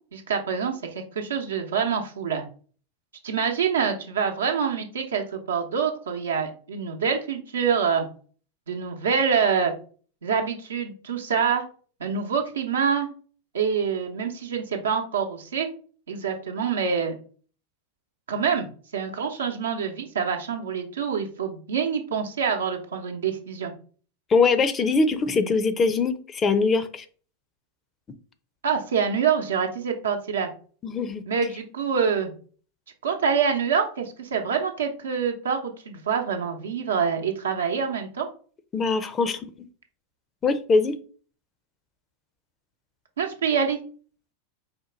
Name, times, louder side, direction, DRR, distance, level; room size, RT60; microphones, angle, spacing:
voice 1, 0.1-2.4 3.2-8.1 8.7-9.7 10.2-11.6 12.0-13.1 13.5-15.7 16.1-17.2 18.3-18.7 18.9-23.7 28.6-30.5 31.3-32.3 33.0-38.3 43.2-43.8, right 6 dB, 80° right, 3 dB, 0.8 m, -26 dB
voice 2, 24.3-27.0 30.8-31.2 38.7-39.5 40.4-40.9, left 4 dB, 30° left, 11 dB, 0.5 m, -22 dB
4.4 x 2.2 x 3.8 m, 0.42 s
hypercardioid pair, 95°, 0 cm